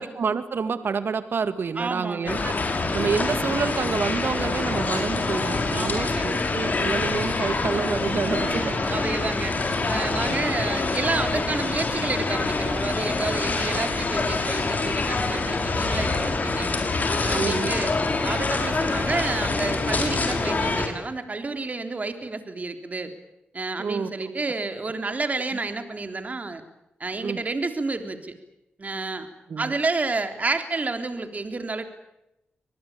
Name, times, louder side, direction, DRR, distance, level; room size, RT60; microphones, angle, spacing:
voice 1, 0.0-2.5 2.9-8.8 10.3-10.4 17.3-17.7 23.8-24.1 27.2-27.4 29.5-29.7, right 5 dB, 65° right, 12 dB, 2.2 m, -28 dB
voice 2, 1.8-2.4 5.7-6.3 8.2-9.5 9.9-16.7 17.2-17.9 18.2-23.1 23.5-26.6 27.0-28.3 28.8-29.3 29.6-31.8, right 3 dB, 40° right, 8 dB, 3.6 m, -30 dB
sound 1, 2.3-20.9, left 3 dB, 45° left, 5.6 m, -25 dB
26.0 x 19.5 x 8.7 m, 0.88 s
cardioid pair, 50°, 4 cm